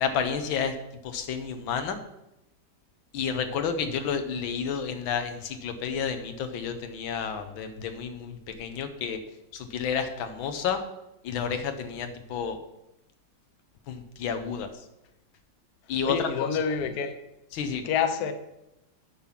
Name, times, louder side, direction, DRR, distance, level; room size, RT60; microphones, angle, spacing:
voice 1, 0.0-0.7 1.0-2.0 3.1-9.2 9.5-10.8 11.2-12.6 13.9-14.7 15.9-16.5 17.5-17.8, left 6 dB, 85° left, 8 dB, 1.7 m, -30 dB
voice 2, 16.0-17.1 17.8-18.3, left 7 dB, 60° left, 9 dB, 1.1 m, -27 dB
8.5 x 5.8 x 5.8 m, 0.89 s
omnidirectional pair, 2.1 m